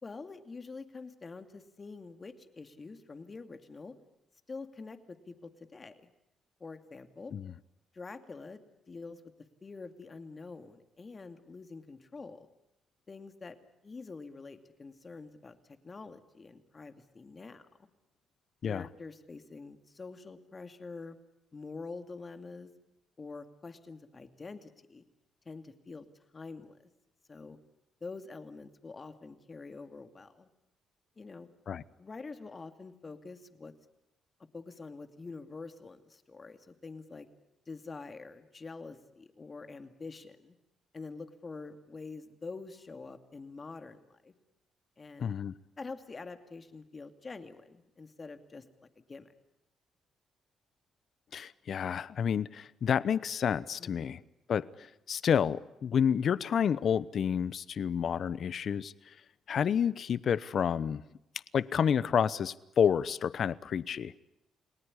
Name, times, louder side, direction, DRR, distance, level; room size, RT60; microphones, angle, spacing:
voice 1, 0.0-4.0 4.5-6.1 6.6-7.3 7.9-8.6 8.9-9.3 9.6-12.5 13.1-13.6 13.8-15.6 15.8-17.9 18.7-21.2 21.5-22.7 23.2-25.0 25.5-26.1 26.3-26.7 27.3-27.6 28.0-30.5 31.2-31.5 32.0-33.7 34.5-37.3 37.7-40.5 40.9-44.3 45.0-45.3 45.8-48.7 49.0-49.3 53.8-54.2, left 4 dB, 30° left, 8 dB, 2.5 m, -46 dB
voice 2, 45.2-45.5 51.3-54.2 54.5-58.9 59.5-61.0 61.5-64.1, left 7 dB, 55° left, 18 dB, 0.9 m, -29 dB
29.5 x 18.5 x 9.9 m, 0.87 s
cardioid pair, 90°, 0 cm